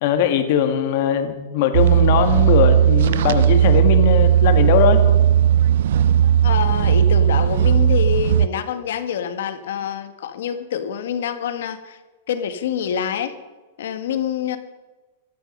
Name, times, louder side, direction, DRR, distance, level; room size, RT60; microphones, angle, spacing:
voice 1, 0.0-5.0, left 8 dB, 45° left, 7 dB, 1.5 m, -20 dB
sound 1, 1.7-8.5, right 10 dB, 65° right, 0.4 m, -16 dB
voice 2, 6.4-12.0 12.3-13.3 13.8-14.6, left 9 dB, 70° left, 10 dB, 1.6 m, -26 dB
16.0 x 12.5 x 5.4 m, 1.2 s
supercardioid pair, 170°, 0 cm